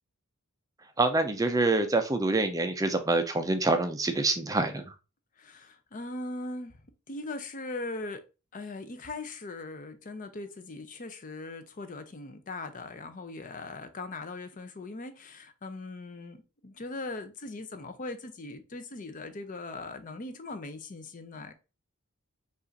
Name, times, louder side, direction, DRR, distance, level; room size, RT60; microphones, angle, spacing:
voice 1, 1.0-4.9, right 2 dB, 15° right, 0.4 m, -26 dB
voice 2, 5.4-6.8 7.1-8.2 8.5-21.5, left 2 dB, 35° left, 0.6 m, -40 dB
5.4 x 2.5 x 3.9 m
head